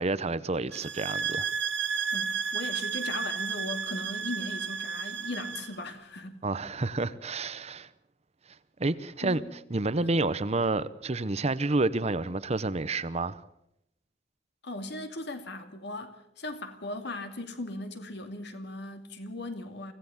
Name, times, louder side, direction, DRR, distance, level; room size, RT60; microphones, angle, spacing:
voice 1, 0.0-1.5 6.4-7.9 8.8-9.4 9.7-13.4, right 2 dB, 35° right, 0.8 m, -29 dB
sound 1, 0.7-5.8, right 6 dB, 65° right, 1.2 m, -32 dB
voice 2, 2.1-6.4 9.2-9.5 10.0-10.1 14.6-19.9, left 2 dB, 60° left, 2.6 m, -38 dB
25.0 x 16.5 x 7.2 m
head